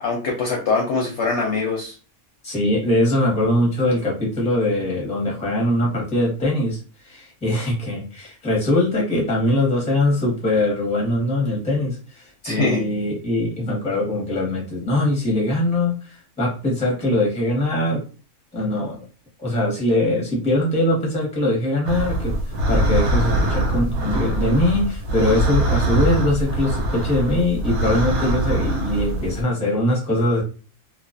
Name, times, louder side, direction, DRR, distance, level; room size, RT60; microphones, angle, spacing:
voice 1, 0.0-1.9 12.4-12.9, left 3 dB, 65° left, -1 dB, 0.7 m, -23 dB
voice 2, 2.4-18.0 18.5-19.0 19.4-30.4, left 1 dB, 5° left, -2 dB, 0.6 m, -22 dB
sound 1, 21.8-29.4, right 1 dB, 85° right, 1.1 m, -23 dB
2.3 x 2.2 x 2.4 m, 0.36 s
omnidirectional pair, 1.5 m